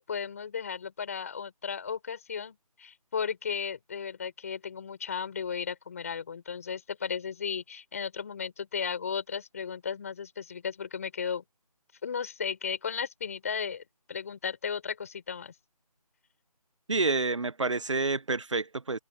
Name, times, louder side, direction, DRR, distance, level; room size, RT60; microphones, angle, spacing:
voice 1, 0.0-11.4 12.0-15.5, left 6 dB, 25° left, 6.8 m, -35 dB
voice 2, 16.9-19.0, right 3 dB, 50° right, 1.1 m, -28 dB
figure-of-eight pair, 175°, 20 cm